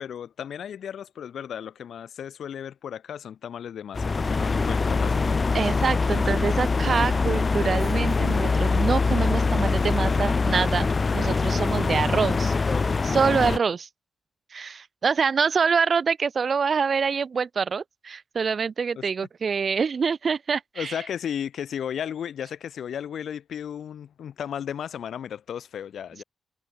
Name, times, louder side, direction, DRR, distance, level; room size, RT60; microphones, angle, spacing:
voice 1, 0.0-5.4 18.9-19.0 20.8-26.2, left 9 dB, 85° left, 2.5 m, -34 dB
sound 1, 3.9-13.6, left 4 dB, 45° left, 0.3 m, -23 dB
voice 2, 5.5-12.5 13.0-13.9 14.5-21.0, right 5 dB, 60° right, 1.0 m, -25 dB
cardioid pair, 60°, 0 cm